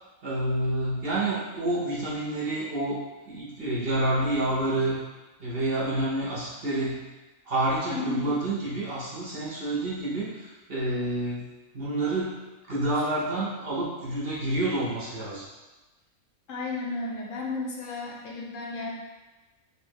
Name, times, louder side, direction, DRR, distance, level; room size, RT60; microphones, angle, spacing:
voice 1, 0.2-3.0 3.3-5.0 5.4-7.0 7.4-11.5 11.7-12.4 12.7-15.4, right 1 dB, 45° right, -7 dB, 1.1 m, -28 dB
voice 2, 7.9-8.3 16.5-18.9, left 3 dB, 70° left, -2 dB, 1.0 m, -33 dB
3.5 x 2.5 x 4.5 m, 1.1 s
omnidirectional pair, 1.5 m